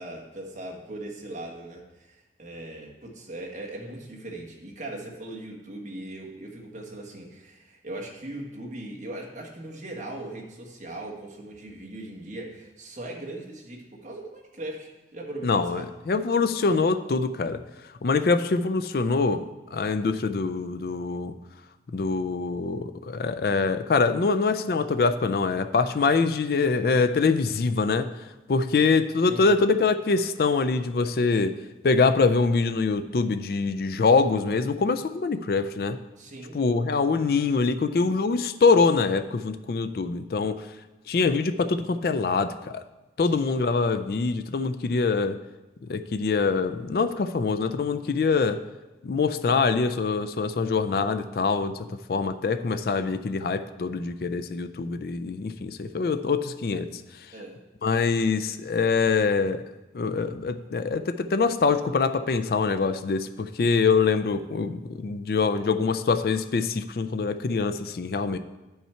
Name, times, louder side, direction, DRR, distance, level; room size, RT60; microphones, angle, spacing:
voice 1, 0.0-15.9 29.3-29.6 36.2-36.9 43.3-43.4 57.3-57.6, right 1 dB, 45° right, -1 dB, 1.4 m, -39 dB
voice 2, 15.4-17.6 18.0-19.4 19.7-21.3 21.9-28.1 28.5-31.5 31.8-36.0 36.5-40.6 41.1-42.8 43.2-45.4 45.9-48.6 49.0-51.8 52.1-56.9 57.8-59.6 59.9-68.4, left 4 dB, 55° left, 10 dB, 0.4 m, -24 dB
11.0 x 5.5 x 4.4 m, 1.1 s
head